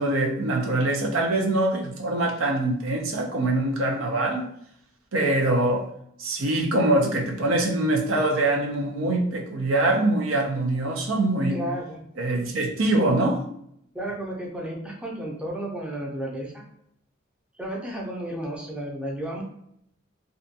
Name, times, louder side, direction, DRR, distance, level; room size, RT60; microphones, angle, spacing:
voice 1, 0.0-4.4 5.1-5.9 6.2-11.6 12.2-13.4, right 2 dB, 85° right, 2 dB, 0.5 m, -23 dB
voice 2, 11.5-12.0 13.9-16.6 17.6-19.4, right 1 dB, 5° right, -2 dB, 0.5 m, -33 dB
2.5 x 2.2 x 2.6 m, 0.73 s
head